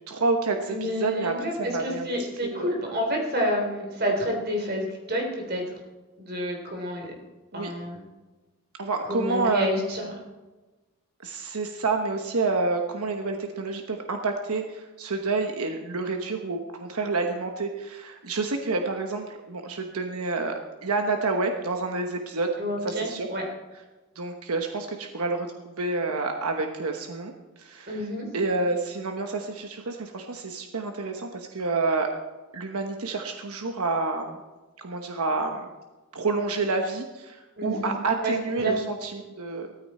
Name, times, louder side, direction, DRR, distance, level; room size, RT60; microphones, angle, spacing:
voice 1, 0.1-2.1 2.4-2.7 7.5-7.7 8.8-9.9 11.2-22.5 22.8-23.3 24.1-28.0 28.3-32.1 32.5-34.4 34.8-35.7 36.1-39.7, right 3 dB, 85° right, 4 dB, 1.1 m, -29 dB
voice 2, 0.6-5.7 6.2-7.1 7.5-8.0 9.0-10.1 22.6-23.4 27.9-28.3 37.6-37.9 38.2-38.8, equal, 45° right, 2 dB, 3.5 m, -29 dB
16.0 x 14.0 x 4.3 m, 1.2 s
head